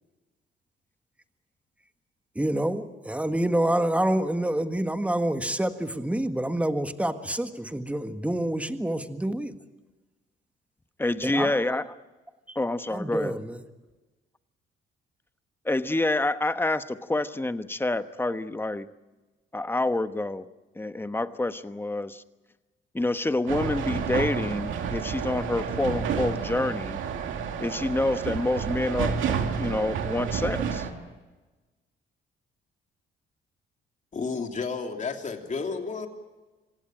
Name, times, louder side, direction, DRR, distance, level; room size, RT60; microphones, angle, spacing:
voice 1, 2.3-9.5 11.2-11.6 12.5-12.6 12.9-13.6, right 1 dB, 5° right, 8 dB, 1.6 m, -27 dB
voice 2, 11.0-11.9 12.5-13.4 15.6-18.9 19.5-20.4 20.7-22.2 22.9-27.0 27.6-30.9, left 2 dB, 10° left, 11 dB, 1.1 m, -27 dB
sound 1, 23.5-30.9, right 6 dB, 80° right, 2.5 m, -30 dB
voice 3, 34.1-36.1, left 4 dB, 40° left, 4 dB, 3.1 m, -31 dB
26.0 x 17.0 x 9.0 m, 1.2 s
cardioid pair, 90°, 20 cm